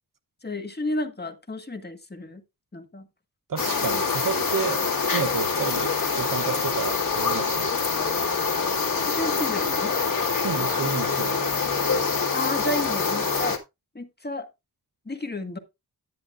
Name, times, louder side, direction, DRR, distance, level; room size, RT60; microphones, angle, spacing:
voice 1, 0.4-2.4 2.7-3.1 9.1-9.9 12.3-13.6 13.9-14.5 15.0-15.6, left 1 dB, 25° left, 1.6 m, -31 dB
voice 2, 3.5-4.8 5.1-7.9 10.4-11.5, right 6 dB, 60° right, 0.9 m, -31 dB
sound 1, 3.6-13.6, left 5 dB, 60° left, 2.0 m, -25 dB
11.0 x 9.9 x 2.5 m
wide cardioid pair, 80°, 37 cm